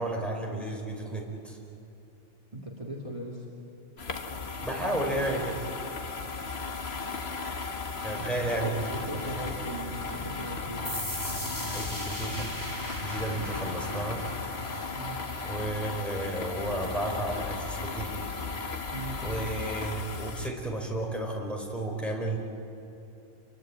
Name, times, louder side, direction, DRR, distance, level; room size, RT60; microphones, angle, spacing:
voice 1, 0.0-1.6 4.6-5.6 8.0-9.0 9.4-9.5 11.7-12.5 13.0-14.2 15.4-18.2 19.2-22.4, right 1 dB, ahead, -1 dB, 4.4 m, -32 dB
voice 2, 2.5-3.5 8.0-10.9 14.9-15.2 18.9-19.2, right 1 dB, 30° right, -2 dB, 2.3 m, -39 dB
sound 1, 4.0-20.5, left 4 dB, 70° left, 1.7 m, -36 dB
sound 2, 10.2-18.8, equal, 40° left, 1.4 m, -45 dB
sound 3, 10.8-18.2, equal, 15° left, 3.0 m, -41 dB
28.0 x 23.5 x 8.8 m, 2.9 s
omnidirectional pair, 1.1 m